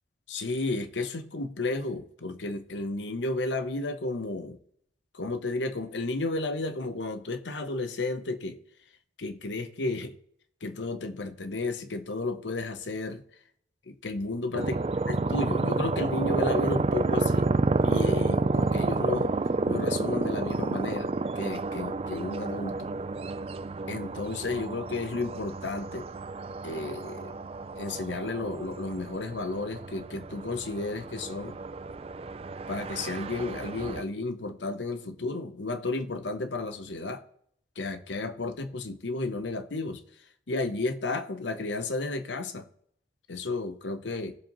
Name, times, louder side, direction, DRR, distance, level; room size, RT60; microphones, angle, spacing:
voice 1, 0.3-4.6 5.1-8.6 9.2-10.1 10.6-13.2 13.9-14.8 15.1-17.5 17.8-19.3 19.7-22.9 23.9-26.1 26.6-27.4 27.8-31.6 32.7-37.2 37.8-40.0 40.5-42.7 43.3-44.4, left 2 dB, 90° left, 0.9 m, -32 dB
sound 1, 14.5-34.0, right 3 dB, 35° right, 0.3 m, -30 dB
18.0 x 7.3 x 3.0 m
head